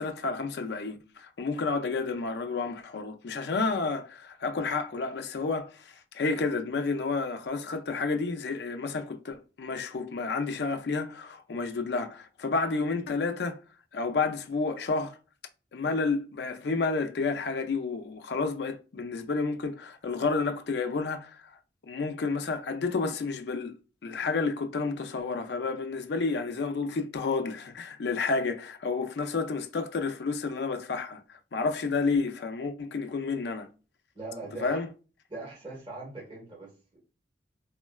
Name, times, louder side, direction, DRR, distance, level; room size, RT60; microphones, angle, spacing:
voice 1, 0.0-13.6 13.9-15.2 15.7-21.6 21.8-33.7 34.6-34.9, left 4 dB, 70° left, 0.4 m, -30 dB
voice 2, 34.1-34.8 35.3-37.0, right 3 dB, 30° right, 1.2 m, -41 dB
3.6 x 2.1 x 2.2 m
head